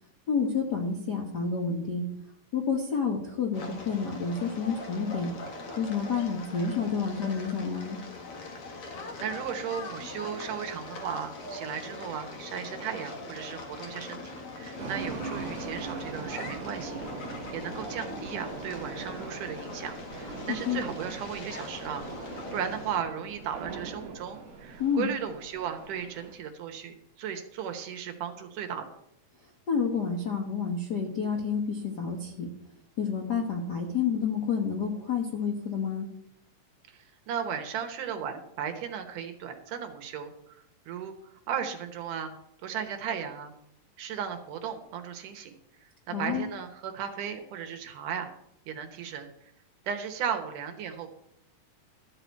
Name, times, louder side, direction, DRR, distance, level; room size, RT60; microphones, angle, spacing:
voice 1, 0.3-2.1 2.5-5.3 5.8-8.0 20.5-20.8 24.8-25.1 29.7-32.5 33.0-36.1 46.1-46.4, left 6 dB, 65° left, 1 dB, 1.0 m, -29 dB
sound 1, 3.5-23.0, left 3 dB, 50° left, 2.1 m, -41 dB
voice 2, 9.2-28.9 36.9-41.1 41.5-42.3 42.6-43.5 44.0-45.6 46.1-48.3 48.7-49.3 49.8-51.1, right 8 dB, 70° right, 6 dB, 2.6 m, -36 dB
sound 2, 14.8-26.3, right 4 dB, 55° right, 2.4 m, -41 dB
13.0 x 4.9 x 8.1 m, 0.77 s
omnidirectional pair, 3.9 m